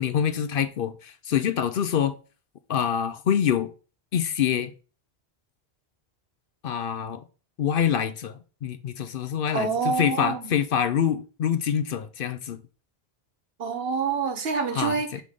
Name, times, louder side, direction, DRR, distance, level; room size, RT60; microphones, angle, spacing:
voice 1, 0.0-2.2 2.7-3.7 4.1-4.7 6.6-7.2 7.6-12.6 14.7-15.2, left 8 dB, 65° left, 0.7 m, -26 dB
voice 2, 9.5-10.5 13.6-15.1, right 5 dB, 65° right, 1.2 m, -27 dB
5.7 x 3.7 x 4.8 m
omnidirectional pair, 1.1 m